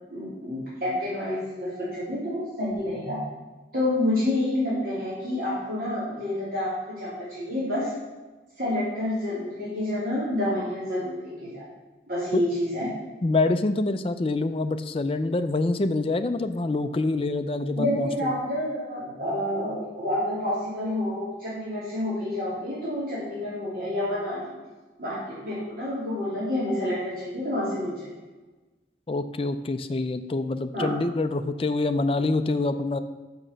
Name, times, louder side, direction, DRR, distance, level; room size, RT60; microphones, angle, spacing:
voice 1, 0.1-3.2 3.7-7.9 8.6-11.6 12.1-12.9 17.8-24.5 25.0-28.1 30.7-30.9, left 1 dB, 50° right, -8 dB, 2.9 m, -28 dB
voice 2, 13.2-18.3 29.1-33.0, left 2 dB, 30° left, 9 dB, 0.4 m, -26 dB
6.1 x 5.9 x 6.6 m, 1.2 s
head